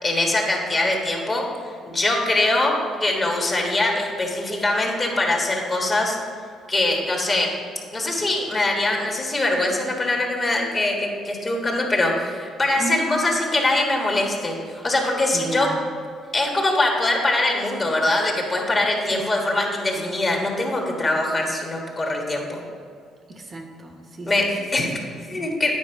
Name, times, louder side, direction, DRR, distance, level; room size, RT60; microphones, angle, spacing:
voice 1, 0.0-1.5 1.9-6.2 6.7-7.5 7.9-15.7 16.3-22.6 24.3-24.5 24.7-24.9 25.3-25.7, left 2 dB, 30° left, 0 dB, 1.5 m, -22 dB
voice 2, 15.3-15.9 19.1-19.6 19.9-20.1 23.3-25.5, right 2 dB, 35° right, 3 dB, 0.9 m, -35 dB
9.4 x 4.7 x 4.6 m, 2.2 s
cardioid pair, 95°, 0 cm